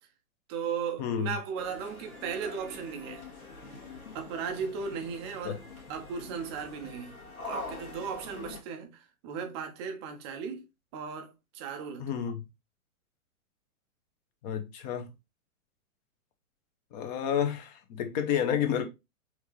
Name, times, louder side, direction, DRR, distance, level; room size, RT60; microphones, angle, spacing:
voice 1, 0.5-3.3 4.1-7.2 7.4-10.7 10.9-12.1, right 6 dB, 20° right, 0.5 m, -36 dB
voice 2, 1.0-1.3 5.4-5.6 12.0-12.4 14.4-15.1 16.9-18.9, left 8 dB, 30° left, 0.8 m, -30 dB
sound 1, 1.6-8.6, left 2 dB, 75° left, 1.4 m, -44 dB
4.5 x 2.8 x 3.0 m
figure-of-eight pair, 110°, 43 cm